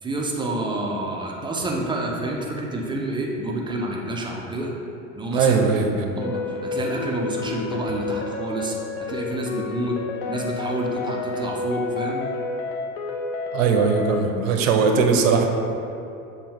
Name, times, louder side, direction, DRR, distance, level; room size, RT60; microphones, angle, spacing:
voice 1, 0.0-4.8 5.1-5.6 6.2-8.8 9.1-10.0 10.3-12.3, right 2 dB, 10° right, -1 dB, 0.5 m, -28 dB
voice 2, 5.3-6.1 13.5-15.5, right 5 dB, 65° right, 4 dB, 0.7 m, -20 dB
sound 1, 6.2-14.2, left 4 dB, 55° left, 0.5 m, -30 dB
6.7 x 2.4 x 3.3 m, 2.8 s
hypercardioid pair, 80°, 43 cm